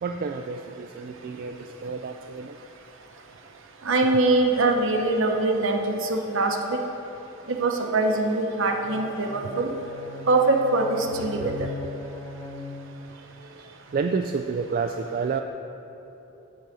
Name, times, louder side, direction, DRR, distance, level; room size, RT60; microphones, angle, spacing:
voice 1, 0.0-2.6 11.2-11.7 13.1-15.4, right 5 dB, 45° right, 5 dB, 0.3 m, -30 dB
voice 2, 3.8-6.8 7.5-9.7 10.3-11.5, right 2 dB, 65° right, 2 dB, 0.9 m, -23 dB
Bowed string instrument, 8.8-13.1, left 3 dB, 15° left, 0.9 m, -39 dB
10.0 x 4.0 x 7.5 m, 3.0 s
head